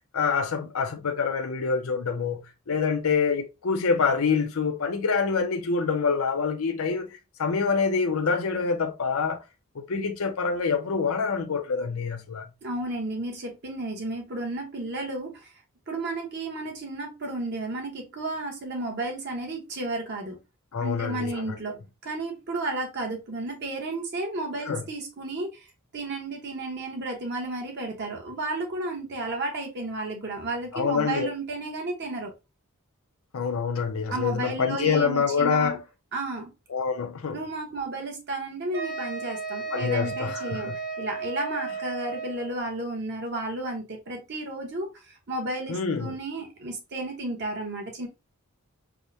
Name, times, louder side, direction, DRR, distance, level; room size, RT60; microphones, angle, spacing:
voice 1, 0.1-2.4 2.7-9.4 9.9-12.4 20.7-21.4 24.7-24.8 30.7-31.3 33.3-35.8 36.7-37.4 39.7-40.8 45.7-46.1, left 5 dB, 75° left, 0.6 m, -26 dB
voice 2, 12.6-15.5 15.9-20.4 20.8-21.8 22.0-25.7 25.9-32.3 34.1-35.8 36.1-36.5 37.3-48.1, right 2 dB, 55° right, 1.1 m, -33 dB
Wind instrument woodwind instrument, 38.7-42.6, right 4 dB, 90° right, 1.2 m, -34 dB
4.7 x 2.1 x 2.6 m
head